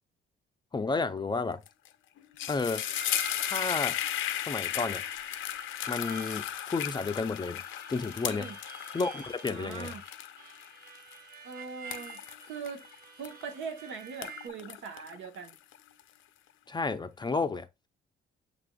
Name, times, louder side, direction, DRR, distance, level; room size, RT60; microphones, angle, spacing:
voice 1, 0.7-1.6 2.5-2.9 3.4-4.0 4.4-5.0 5.9-7.6 7.9-8.5 8.9-9.9 16.7-17.7, left 4 dB, 20° left, 0.4 m, -31 dB
sound 1, 1.7-1.9 2.2-13.7 14.1-16.0, left 12 dB, 85° left, 0.5 m, -36 dB
Harmonica, 2.5-14.5, right 6 dB, 50° right, 0.5 m, -49 dB
voice 2, 8.2-8.6 9.4-10.0 11.4-12.8 13.2-15.6, right 5 dB, 75° right, 1.0 m, -41 dB
6.6 x 3.4 x 2.2 m
cardioid pair, 90°, 20 cm